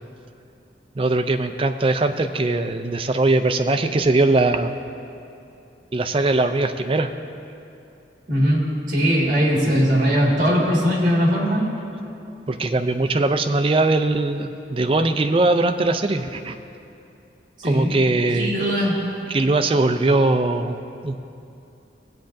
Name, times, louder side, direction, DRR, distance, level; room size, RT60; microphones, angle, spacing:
voice 1, 1.0-4.8 5.9-7.1 12.5-16.5 17.6-18.5 19.3-21.2, right 2 dB, 30° right, 7 dB, 0.4 m, -20 dB
voice 2, 8.3-11.6 17.6-18.0 18.3-19.0, equal, 45° right, -3 dB, 1.9 m, -20 dB
17.5 x 8.5 x 2.6 m, 2.7 s
head